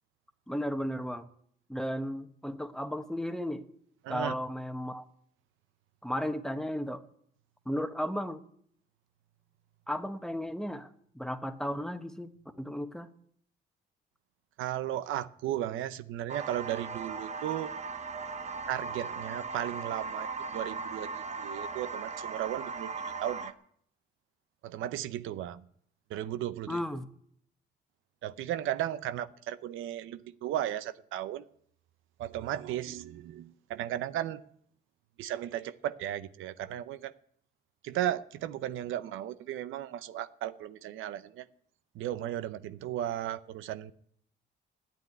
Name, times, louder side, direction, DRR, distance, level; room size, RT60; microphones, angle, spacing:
voice 1, 0.5-1.3 1.7-3.6 4.1-5.0 6.0-7.0 7.7-8.4 9.9-10.9 11.1-12.3 12.6-13.1 26.7-27.1, equal, 5° left, 9 dB, 1.2 m, -34 dB
voice 2, 4.0-4.3 14.6-17.7 18.7-22.9 23.2-23.5 24.6-25.6 26.1-26.8 28.2-31.4 32.2-34.4 35.2-37.1 37.8-41.5 41.9-43.9, right 12 dB, 90° right, 13 dB, 0.7 m, -35 dB
sound 1, 16.3-23.5, right 4 dB, 35° right, 1.1 m, -38 dB
13.0 x 9.6 x 9.4 m, 0.66 s
cardioid pair, 90°, 20 cm